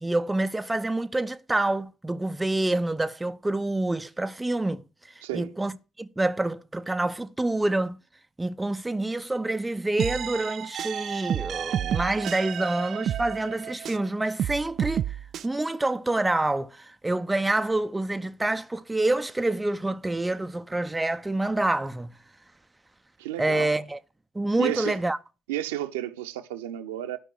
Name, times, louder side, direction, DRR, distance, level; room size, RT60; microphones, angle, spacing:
voice 1, 0.0-4.8 5.3-5.7 6.0-8.0 8.4-15.2 15.4-22.1 23.4-24.0 24.3-25.2, right 2 dB, 10° right, 0.7 m, -27 dB
voice 2, 5.2-5.5 23.2-23.7 24.6-25.0 25.5-27.2, right 13 dB, 70° right, 1.1 m, -32 dB
sound 1, 10.0-14.1 14.4-15.4, right 10 dB, 45° right, 0.5 m, -30 dB
12.5 x 5.4 x 7.6 m
figure-of-eight pair, 60°, 0 cm